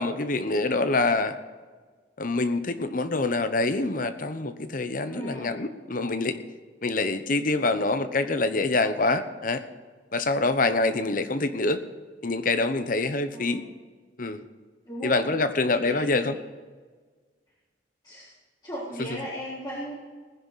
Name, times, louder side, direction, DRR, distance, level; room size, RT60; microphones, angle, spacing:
voice 1, 0.0-1.4 2.2-6.4 6.8-9.6 10.1-11.8 12.2-13.6 14.2-14.4 15.0-16.3, left 3 dB, 50° left, 10 dB, 1.0 m, -25 dB
voice 2, 5.0-5.6 10.1-10.2 10.6-11.1 13.3-13.7 14.9-15.3 15.7-16.3 18.0-18.3 18.6-19.9, equal, 20° left, -10 dB, 4.0 m, -37 dB
19.5 x 10.0 x 4.1 m, 1.5 s
head